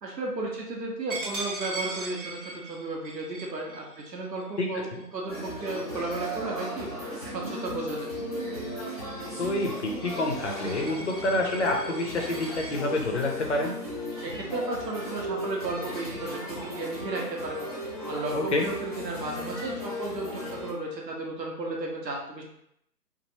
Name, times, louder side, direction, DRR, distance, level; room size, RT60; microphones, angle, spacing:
voice 1, 0.0-6.9 7.2-8.1 14.1-17.6 17.9-22.4, right 2 dB, 80° right, -1 dB, 1.1 m, -34 dB
Coin (dropping), 1.1-6.5 7.0-7.2 7.6-12.7, right 3 dB, 60° right, 1.1 m, -41 dB
sound 1, 5.3-20.7, equal, 25° right, 0.5 m, -36 dB
voice 2, 9.4-13.8 18.3-18.6, left 2 dB, 45° left, 1 dB, 0.5 m, -28 dB
3.0 x 2.5 x 2.7 m, 0.76 s
figure-of-eight pair, 150°, 49 cm